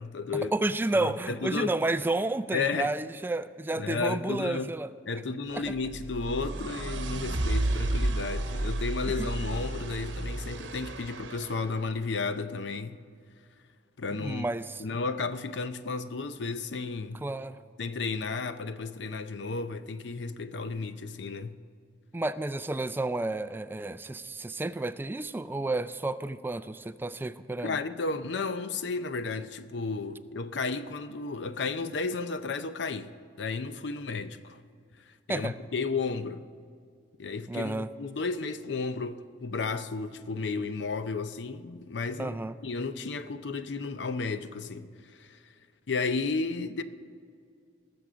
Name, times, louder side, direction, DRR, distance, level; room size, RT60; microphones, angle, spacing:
voice 1, 0.0-0.5 0.9-1.8 2.5-2.9 3.7-4.7 5.1-13.0 14.0-14.5 14.8-17.2 17.8-21.6 27.6-33.1 33.4-34.6 35.3-36.4 37.2-42.4 42.6-45.4 45.9-46.8, left 4 dB, 70° left, 0.6 m, -33 dB
voice 2, 0.5-4.9 5.5-5.6 9.2-9.3 14.1-14.8 17.2-17.6 22.1-27.8 35.3-35.5 37.5-37.9 42.2-42.5, right 2 dB, 10° right, 0.3 m, -31 dB
sound 1, 5.7-11.8, right 1 dB, 85° right, 0.9 m, -32 dB
19.5 x 7.0 x 5.0 m
head